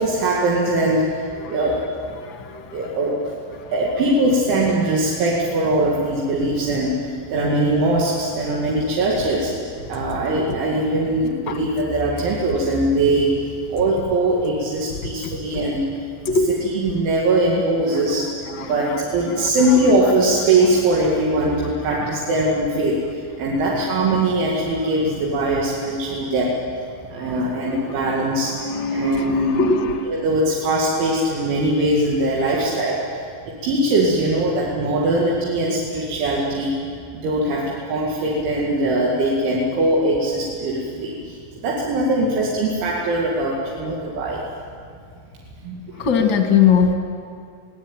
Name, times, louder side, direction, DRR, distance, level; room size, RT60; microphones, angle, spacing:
voice 1, 0.0-2.0 2.7-3.3 3.7-9.5 9.9-18.3 18.7-26.8 27.1-28.5 28.9-29.6 30.0-33.3 33.6-36.8 37.1-44.4 45.6-46.1, right 1 dB, 75° right, -4 dB, 4.8 m, -21 dB
voice 2, 18.6-19.0 19.3-19.4 28.6-30.1 46.0-46.9, left 5 dB, 45° left, 3 dB, 1.6 m, -19 dB
24.0 x 17.5 x 9.1 m, 2.3 s
omnidirectional pair, 5.5 m